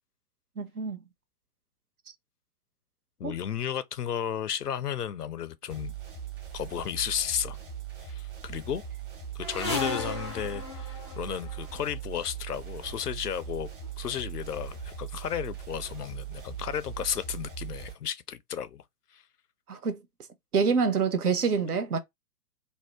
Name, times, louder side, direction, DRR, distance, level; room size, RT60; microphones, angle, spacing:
voice 1, 0.6-1.0 3.2-3.3 19.7-20.0 20.5-22.0, right 5 dB, 70° right, 0.8 m, -26 dB
voice 2, 3.2-5.9 6.5-7.6 8.0-8.8 9.3-13.7 14.0-18.8 19.1-19.2, left 9 dB, 80° left, 0.5 m, -33 dB
sound 1, 5.7-17.9, right 8 dB, 25° right, 1.2 m, -40 dB
sound 2, 9.4-11.9 12.9-13.1 13.8-13.9 14.2-15.1 15.4-15.9 16.6-16.7 17.0-17.1, left 3 dB, 20° left, 0.3 m, -36 dB
2.7 x 2.1 x 3.4 m
figure-of-eight pair, 115°, 46 cm